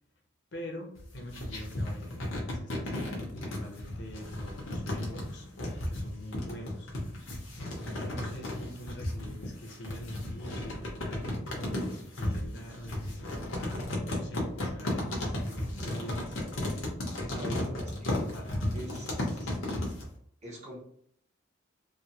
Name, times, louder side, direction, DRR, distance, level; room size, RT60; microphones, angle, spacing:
voice 1, 0.5-5.5 5.9-6.9 7.6-11.9 12.2-13.8 14.1-16.4 17.2-17.8 18.1-19.0 19.3-19.8, left 1 dB, 60° left, 1 dB, 0.7 m, -44 dB
sound 1, 1.0-20.1, left 1 dB, 90° left, 0.9 m, -34 dB
voice 2, 17.3-17.6 18.0-18.2 18.7-19.5 20.4-20.9, equal, 35° right, -3 dB, 0.8 m, -43 dB
3.3 x 2.1 x 2.8 m, 0.65 s
head